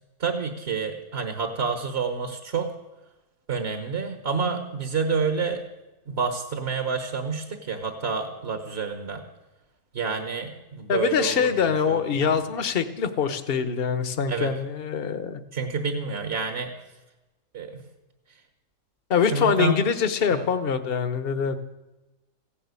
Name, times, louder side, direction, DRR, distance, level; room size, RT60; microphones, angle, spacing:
voice 1, 0.2-2.7 3.5-5.6 6.1-9.2 9.9-12.2 14.3-14.5 15.5-16.7 17.5-17.8 18.3-18.4 19.2-19.8 20.3-20.5, right 5 dB, 45° right, 6 dB, 1.4 m, -28 dB
voice 2, 10.9-15.4 19.1-21.6, left 6 dB, 45° left, 10 dB, 1.1 m, -24 dB
16.0 x 11.0 x 8.3 m, 1.1 s
omnidirectional pair, 1.6 m